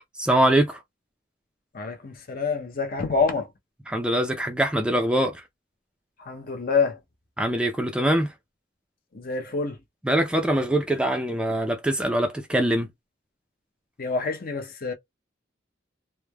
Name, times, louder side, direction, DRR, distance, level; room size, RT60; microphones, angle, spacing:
voice 1, 0.2-0.8 3.9-5.4 7.4-8.3 10.0-12.9, right 1 dB, 5° right, 0.4 m, -23 dB
voice 2, 1.7-3.5 6.2-7.0 9.1-9.8 14.0-14.9, left 4 dB, 50° left, 0.7 m, -27 dB
3.1 x 2.1 x 2.2 m
head